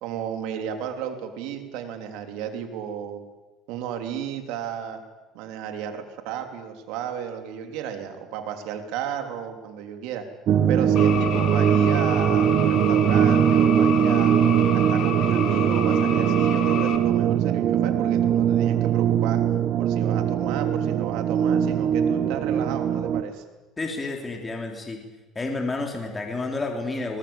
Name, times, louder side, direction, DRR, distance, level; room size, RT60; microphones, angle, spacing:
voice 1, 0.0-3.2 3.7-5.0 5.3-10.3 10.7-14.4 14.7-19.4 19.8-23.4, right 8 dB, 80° right, 6 dB, 3.4 m, -33 dB
sound 1, 10.5-23.2, right 9 dB, 50° right, 1.2 m, -21 dB
sound 2, 11.0-17.0, left 8 dB, 55° left, 2.9 m, -31 dB
voice 2, 23.8-25.0 25.4-27.2, left 3 dB, 15° left, 2 dB, 3.4 m, -30 dB
23.0 x 19.5 x 8.9 m, 1.2 s
cardioid pair, 130°, 0 cm